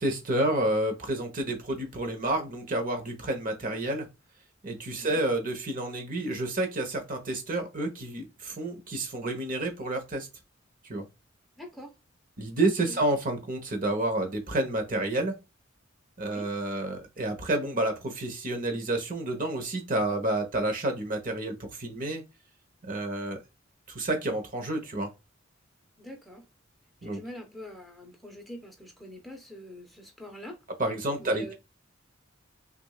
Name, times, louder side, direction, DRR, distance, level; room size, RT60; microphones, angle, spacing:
voice 1, 0.0-4.1 4.6-10.3 10.9-11.1 12.4-15.4 16.2-22.2 22.8-23.4 23.9-25.1 27.0-27.2 30.8-31.5, right 1 dB, 45° right, 1.1 m, -29 dB
voice 2, 11.6-11.9 12.9-13.0 16.2-16.5 26.0-26.4 27.0-30.6 31.2-31.5, equal, ahead, 1.0 m, -44 dB
6.2 x 2.6 x 2.4 m
head